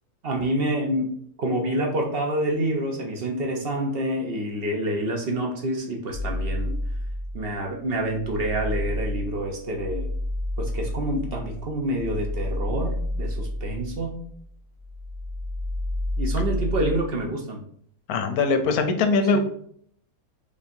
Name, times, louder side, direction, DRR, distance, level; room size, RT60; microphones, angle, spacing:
voice 1, 0.2-1.1 1.4-6.7 7.3-10.1 10.6-14.2 16.2-17.6 19.3-19.4, right 1 dB, 55° right, 1 dB, 0.7 m, -27 dB
sound 1, 6.1-7.5 7.9-14.5 14.8-17.1, left 1 dB, 80° right, 1.7 m, -30 dB
voice 2, 18.1-19.4, left 4 dB, 90° left, 7 dB, 1.1 m, -21 dB
5.0 x 2.7 x 2.6 m, 0.64 s
omnidirectional pair, 1.5 m